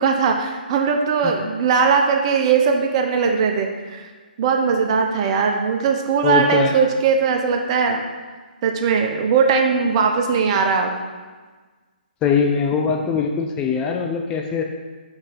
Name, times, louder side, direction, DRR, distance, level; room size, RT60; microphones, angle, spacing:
voice 1, 0.0-4.1 4.4-8.0 8.6-11.0, right 5 dB, 35° right, 3 dB, 0.7 m, -19 dB
voice 2, 6.2-6.8 12.2-14.6, left 6 dB, 15° left, 2 dB, 0.5 m, -21 dB
5.4 x 4.1 x 5.3 m, 1.4 s
figure-of-eight pair, 140°, 5 cm